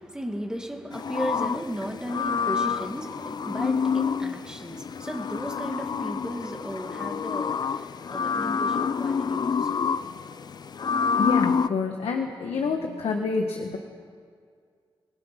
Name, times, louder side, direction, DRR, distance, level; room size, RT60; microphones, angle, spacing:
voice 1, 0.0-9.9, right 1 dB, 5° right, 2 dB, 1.9 m, -35 dB
sound 1, 0.9-11.7, left 6 dB, 45° left, 0.5 m, -28 dB
voice 2, 11.2-13.8, left 4 dB, 80° left, 3 dB, 1.6 m, -28 dB
26.0 x 20.0 x 5.9 m, 2.1 s
wide cardioid pair, 165°, 10 cm